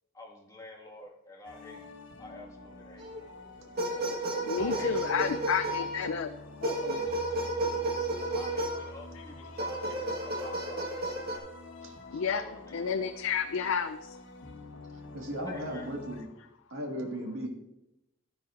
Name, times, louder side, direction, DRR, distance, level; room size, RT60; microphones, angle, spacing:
voice 1, 0.1-3.1 3.4-3.5 4.6-5.2 8.3-10.8 12.3-12.8 15.4-15.8, left 2 dB, 15° left, -2 dB, 1.8 m, -48 dB
sound 1, 1.4-16.2, left 2 dB, 65° left, 1.4 m, -47 dB
sound 2, 3.0-3.3 3.8-6.1 6.6-8.9 9.6-11.4, right 1 dB, 50° right, 1.5 m, -32 dB
voice 2, 4.0-6.3 6.6-7.0 9.1-9.6 12.1-14.2, left 6 dB, 85° left, 9 dB, 0.4 m, -32 dB
voice 3, 11.8-12.2 15.1-16.3 16.7-17.5, equal, 80° right, 1 dB, 1.8 m, -37 dB
12.0 x 10.5 x 2.5 m, 0.91 s
head